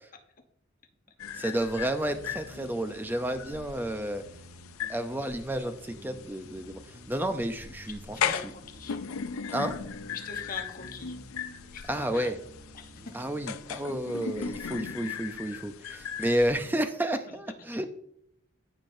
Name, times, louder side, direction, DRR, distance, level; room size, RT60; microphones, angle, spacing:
sound 1, 1.2-16.5, left 7 dB, 90° left, 0.5 m, -38 dB
voice 1, 1.4-4.2 4.9-6.8 7.1-8.3 9.5-9.8 11.9-12.4 13.1-17.9, right 1 dB, 10° right, 8 dB, 0.5 m, -31 dB
sound 2, 1.8-14.1, right 1 dB, 45° right, 1.0 m, -52 dB
voice 2, 7.9-9.0 10.2-11.2 11.7-12.4 12.7-13.3 16.2-16.5 17.3-17.4, left 4 dB, 40° left, 4 dB, 0.9 m, -43 dB
14.5 x 5.1 x 2.6 m, 0.73 s
head